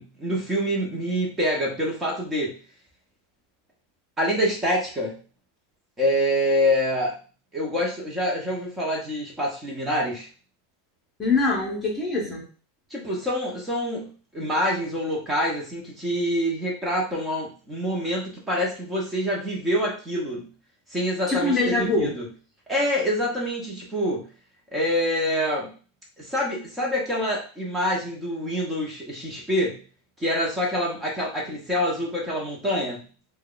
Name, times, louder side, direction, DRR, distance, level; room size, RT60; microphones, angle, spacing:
voice 1, 0.0-2.6 4.2-5.1 6.0-7.2 7.5-10.3 12.9-20.5 20.9-22.3 22.7-24.3 24.7-25.7 26.2-29.8 30.2-33.0, equal, 15° right, -3 dB, 0.9 m, -26 dB
voice 2, 11.2-12.5 21.3-22.2, left 3 dB, 15° left, -2 dB, 0.9 m, -23 dB
2.8 x 2.2 x 3.8 m, 0.38 s
supercardioid pair, 145°, 0 cm